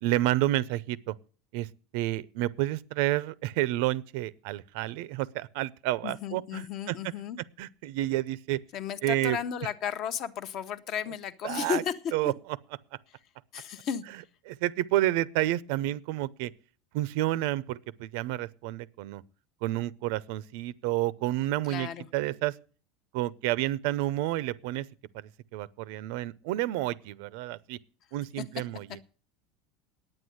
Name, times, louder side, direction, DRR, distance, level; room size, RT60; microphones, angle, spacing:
voice 1, 0.0-1.1 1.5-1.7 1.9-6.9 7.6-8.6 9.0-9.4 11.4-11.8 12.1-12.3 14.5-16.5 16.9-19.2 19.6-22.5 23.1-24.9 25.1-27.8 28.1-28.9, right 16 dB, 65° right, 0.6 m, -30 dB
voice 2, 6.0-7.4 8.7-12.0 12.2-12.3 13.1-13.2 13.5-14.0 21.7-22.1 28.4-28.5, left 8 dB, 40° left, 0.8 m, -34 dB
9.8 x 9.2 x 7.8 m
cardioid pair, 165°, 0 cm